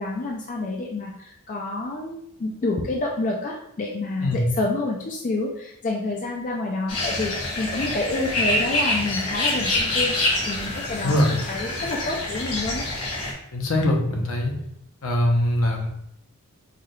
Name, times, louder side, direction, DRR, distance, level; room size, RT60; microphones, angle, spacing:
voice 1, 0.0-10.2 10.5-11.2 11.5-12.8, left 2 dB, 35° left, -1 dB, 0.4 m, -28 dB
sound 1, 6.9-13.3, left 2 dB, 85° left, 1.4 m, -26 dB
voice 2, 11.0-11.3 13.5-14.5 15.0-15.9, left 1 dB, 65° left, 1 dB, 0.8 m, -22 dB
4.7 x 2.3 x 3.1 m, 0.75 s
head